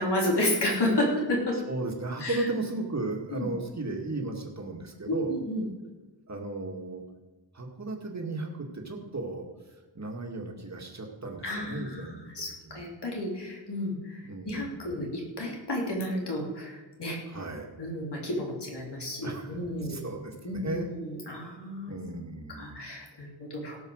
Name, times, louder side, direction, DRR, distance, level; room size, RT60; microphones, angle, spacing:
voice 1, 0.0-1.6 2.2-2.4 3.3-3.5 5.1-5.6 11.4-17.2 17.8-20.0 20.4-22.0 22.5-23.8, left 1 dB, 70° left, -2 dB, 3.4 m, -31 dB
voice 2, 1.5-5.4 6.3-7.0 7.5-9.5 9.9-12.3 12.6-12.8 14.2-14.7 17.2-17.9 19.2-20.9 21.9-22.8, right 2 dB, 40° right, 1 dB, 2.1 m, -35 dB
17.0 x 6.4 x 6.4 m, 1.2 s
wide cardioid pair, 100°, 42 cm